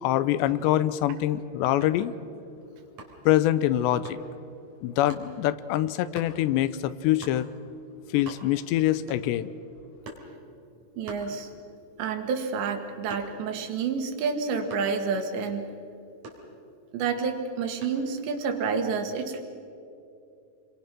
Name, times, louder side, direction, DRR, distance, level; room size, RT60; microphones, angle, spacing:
voice 1, 0.0-2.1 3.3-4.2 4.8-7.5 8.1-9.5, left 13 dB, 85° left, 14 dB, 3.0 m, -24 dB
sound 1, 1.8-2.1 3.0-3.3 4.0-4.3 5.1-5.3 6.1-6.4 7.2-7.4 7.9-8.7 9.1-9.5 10.0-10.4 11.0-11.8 12.2-13.6 14.7-15.0 16.2-16.9 17.8-18.1, right 2 dB, 40° right, 4.2 m, -45 dB
voice 2, 11.0-11.5 12.0-15.7 16.9-19.4, right 5 dB, 85° right, 4 dB, 3.9 m, -29 dB
29.0 x 23.5 x 6.1 m, 2.6 s
omnidirectional pair, 4.9 m